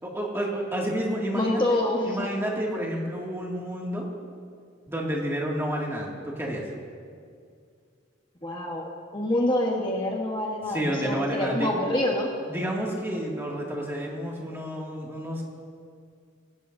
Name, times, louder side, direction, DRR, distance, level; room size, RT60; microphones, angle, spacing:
voice 1, 0.0-1.8 2.0-4.1 4.9-6.7 10.7-11.7 12.5-15.4, equal, 15° right, -3 dB, 2.2 m, -30 dB
voice 2, 1.3-2.2 8.4-12.3, left 1 dB, 25° left, -1 dB, 1.2 m, -26 dB
20.5 x 17.0 x 2.7 m, 2.2 s
head